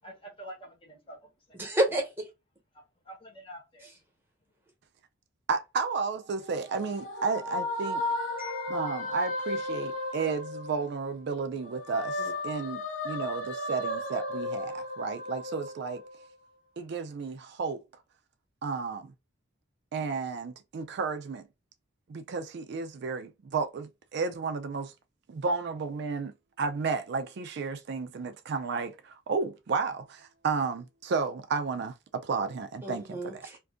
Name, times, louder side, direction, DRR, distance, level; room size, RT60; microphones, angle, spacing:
voice 1, 0.0-1.6 2.7-3.9, right 1 dB, 25° left, 0.9 m, -47 dB
voice 2, 1.6-2.2 8.4-9.0 12.2-12.3 32.8-33.6, right 1 dB, 10° right, 1.0 m, -31 dB
voice 3, 5.5-8.0 8.7-16.0 16.8-17.8 18.6-19.1 19.9-21.4 22.1-24.9 25.3-26.3 26.6-33.5, right 4 dB, 55° right, 0.3 m, -32 dB
sound 1, 6.2-11.2 11.6-16.3, left 1 dB, 85° left, 1.0 m, -35 dB
2.6 x 2.5 x 3.5 m
head